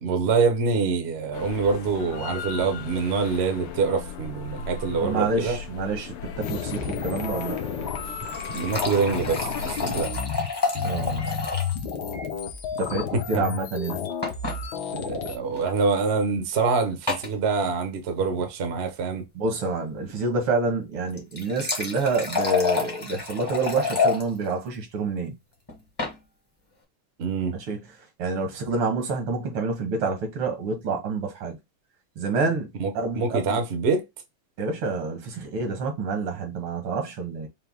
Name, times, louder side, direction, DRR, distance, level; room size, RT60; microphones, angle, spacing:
voice 1, 0.0-5.6 8.5-10.1 13.1-13.4 14.9-19.2 27.2-27.6 32.8-34.0, right 4 dB, 60° right, 0.6 m, -25 dB
sound 1, 1.3-10.0, left 6 dB, 80° left, 1.6 m, -37 dB
voice 2, 5.0-7.6 10.8-11.3 12.8-14.1 19.4-25.4 27.7-27.8 28.2-31.6 32.2-32.7 32.9-33.6 34.6-37.5, right 3 dB, 80° right, 2.1 m, -28 dB
sound 2, 6.4-15.4, left 6 dB, 65° left, 1.1 m, -32 dB
sound 3, 8.0-11.8 12.1-12.2 12.4-12.5 14.2-14.6 15.5-15.7 17.1-17.3 21.1-24.2 25.7-26.2, left 4 dB, 20° left, 0.6 m, -28 dB
5.6 x 2.1 x 3.4 m
omnidirectional pair, 2.4 m